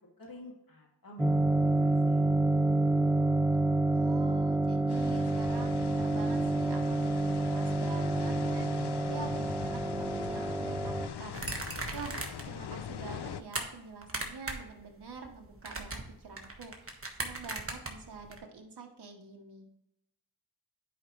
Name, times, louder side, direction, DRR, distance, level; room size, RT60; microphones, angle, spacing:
voice 1, 0.2-2.3, left 1 dB, 60° left, -2 dB, 2.5 m, -49 dB
sound 1, 1.2-11.1, right 2 dB, 5° right, 0.4 m, -28 dB
voice 2, 3.9-19.7, right 4 dB, 90° right, 2 dB, 1.0 m, -46 dB
sound 2, 4.9-13.4, left 8 dB, 90° left, 0.5 m, -42 dB
sound 3, 11.3-12.6 12.9-13.6 14.0-14.7 15.0-18.4, right 2 dB, 35° right, 1.4 m, -38 dB
10.0 x 5.1 x 3.1 m, 0.83 s
wide cardioid pair, 55°, 39 cm